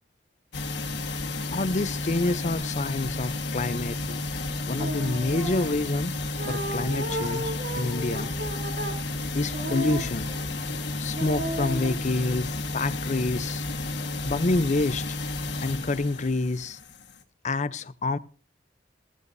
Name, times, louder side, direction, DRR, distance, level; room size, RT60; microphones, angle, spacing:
sound 1, 0.5-17.2, left 2 dB, 80° left, 1.5 m, -32 dB
voice 1, 1.5-4.2 4.7-6.1 6.5-8.3 9.3-10.3 10.7-10.8 11.0-13.6 14.2-15.2 15.6-16.8 17.4-18.2, left 2 dB, 40° left, 0.6 m, -28 dB
sound 2, 4.7-5.9 6.4-10.6 11.1-11.9, right 1 dB, 65° right, 2.6 m, -34 dB
15.0 x 14.0 x 2.7 m
head